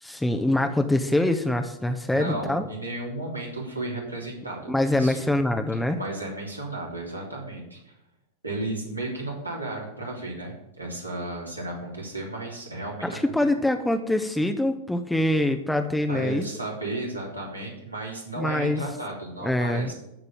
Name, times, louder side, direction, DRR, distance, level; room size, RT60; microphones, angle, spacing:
voice 1, 0.0-2.6 4.7-6.0 13.0-16.4 18.4-18.8 19.4-19.9, left 1 dB, 5° left, 6 dB, 0.8 m, -24 dB
voice 2, 2.1-5.2 5.9-7.9 8.4-13.2 16.1-19.9, right 2 dB, 85° right, -2 dB, 3.5 m, -34 dB
13.5 x 5.4 x 7.2 m, 0.87 s
figure-of-eight pair, 90°, 0 cm